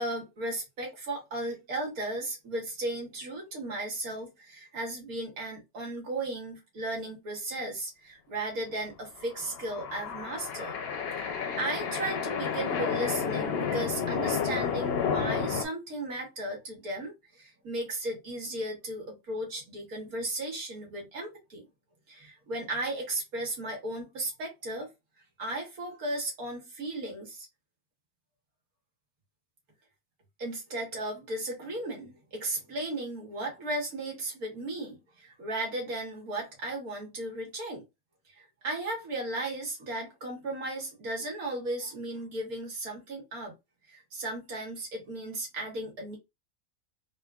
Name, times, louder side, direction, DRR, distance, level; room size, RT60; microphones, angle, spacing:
voice 1, 0.0-10.7 11.2-21.6 22.1-24.9 25.4-27.5 30.4-37.8 38.3-43.5 43.9-46.2, right 1 dB, 85° right, 1.9 m, -35 dB
sound 1, 9.2-15.7, left 6 dB, 60° left, 0.7 m, -31 dB
3.7 x 2.5 x 2.3 m
omnidirectional pair, 1.5 m